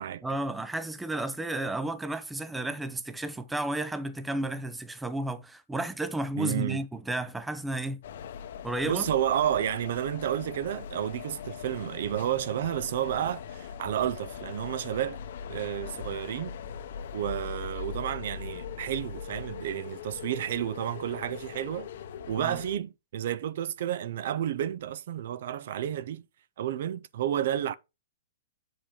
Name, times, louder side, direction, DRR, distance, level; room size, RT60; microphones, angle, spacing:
voice 1, 0.2-8.0 8.6-9.1 22.4-22.6, right 2 dB, 5° right, 0.5 m, -32 dB
voice 2, 6.3-6.8 8.8-15.2 15.5-16.6 17.1-21.9 22.3-26.2 26.6-27.7, right 10 dB, 55° right, 0.5 m, -31 dB
sound 1, 8.0-22.8, left 7 dB, 55° left, 0.9 m, -41 dB
8.5 x 5.1 x 3.6 m
hypercardioid pair, 165°, 0 cm